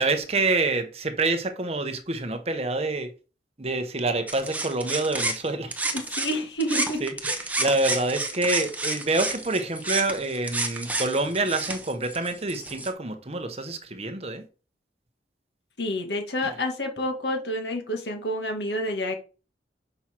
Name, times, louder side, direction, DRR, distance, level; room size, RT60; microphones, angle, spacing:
voice 1, 0.0-3.1 3.6-5.8 7.0-14.4, right 2 dB, 35° right, 0.9 m, -27 dB
sound 1, 4.3-6.4 6.6-12.9, right 2 dB, 10° right, 0.8 m, -30 dB
voice 2, 6.1-7.0 15.8-19.1, left 1 dB, 75° left, 1.9 m, -28 dB
5.9 x 5.5 x 4.4 m
head